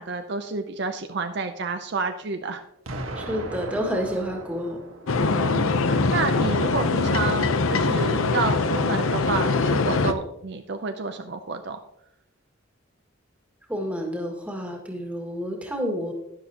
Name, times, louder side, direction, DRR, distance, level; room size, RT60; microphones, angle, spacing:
voice 1, 0.0-2.6 5.4-11.8, right 4 dB, 55° right, 7 dB, 0.6 m, -30 dB
Explosion, 2.9-5.8, right 2 dB, 80° right, 1.5 m, -37 dB
voice 2, 3.2-4.8 13.7-16.1, equal, 5° right, 0 dB, 1.9 m, -29 dB
sound 1, 5.1-10.1, left 3 dB, 80° left, 0.7 m, -22 dB
12.0 x 11.0 x 2.9 m, 0.79 s
head